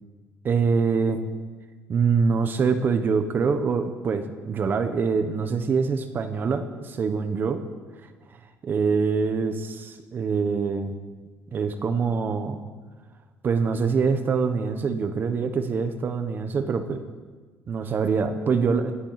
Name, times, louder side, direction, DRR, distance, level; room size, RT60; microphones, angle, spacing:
voice 1, 0.4-1.2 1.9-7.6 8.0-11.0 11.5-12.6 13.4-17.0 17.7-18.9, right 5 dB, 35° right, 8 dB, 1.2 m, -24 dB
18.0 x 11.5 x 5.9 m, 1.4 s
cardioid pair, 130°, 6 cm